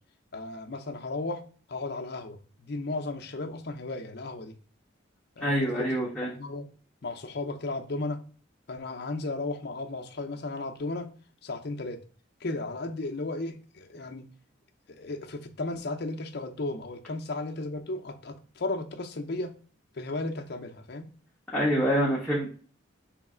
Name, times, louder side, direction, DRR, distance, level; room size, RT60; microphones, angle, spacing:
voice 1, 0.3-1.4 1.7-4.5 5.4-6.7 7.0-8.2 8.7-11.1 11.4-12.0 12.4-14.3 14.9-19.5 20.0-21.1, left 2 dB, 55° left, 5 dB, 0.6 m, -35 dB
voice 2, 5.4-6.3 21.5-22.5, equal, 5° left, -5 dB, 0.9 m, -26 dB
3.4 x 3.2 x 4.8 m, 0.40 s
head